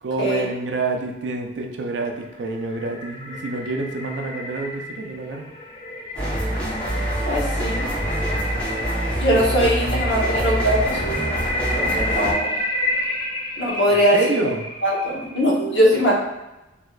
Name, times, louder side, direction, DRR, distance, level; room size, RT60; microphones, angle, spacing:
voice 1, 0.0-5.5 13.9-14.6, right 3 dB, 70° right, 3 dB, 0.4 m, -28 dB
sound 1, 2.1-15.5, left 1 dB, 25° left, 0.4 m, -30 dB
sound 2, 6.1-12.3, right 1 dB, 5° left, 0.8 m, -25 dB
voice 2, 7.3-8.0 9.2-11.3 11.7-12.5 13.6-14.2 14.8-16.2, equal, 75° left, -3 dB, 0.9 m, -21 dB
3.1 x 2.7 x 2.3 m, 0.98 s
head